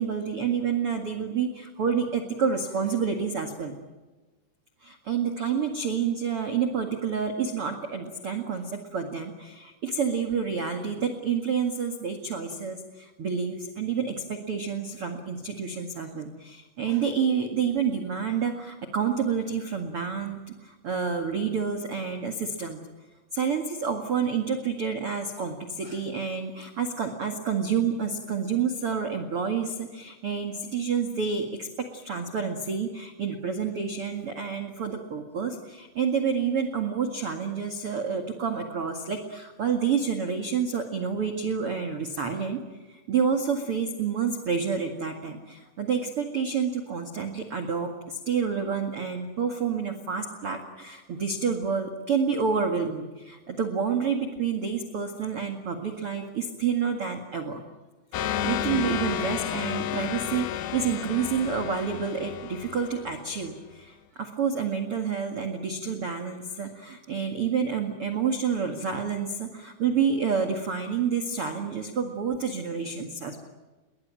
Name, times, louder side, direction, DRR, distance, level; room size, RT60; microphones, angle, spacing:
voice 1, 0.0-3.7 4.8-22.8 23.3-42.6 42.9-57.6 58.3-73.4, right 6 dB, 45° right, 4 dB, 2.0 m, -29 dB
sound 1, 58.1-63.5, left 10 dB, 70° left, 2.8 m, -32 dB
29.5 x 22.0 x 7.6 m, 1.2 s
omnidirectional pair, 5.3 m